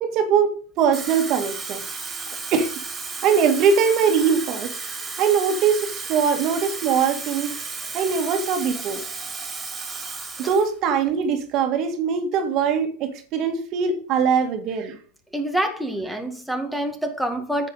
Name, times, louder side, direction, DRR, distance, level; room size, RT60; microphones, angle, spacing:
voice 1, 0.0-1.8 2.5-2.7 3.2-4.7 5.2-7.5 7.9-9.0 10.4-15.0, right 6 dB, 45° right, 1.9 m, -21 dB
Water tap faucet / Fill (with liquid), 0.8-10.7 11.1-11.3, right 4 dB, 15° right, 2.8 m, -33 dB
voice 2, 15.3-17.7, right 1 dB, ahead, 1.7 m, -26 dB
10.0 x 8.1 x 4.0 m
supercardioid pair, 135°, 0 cm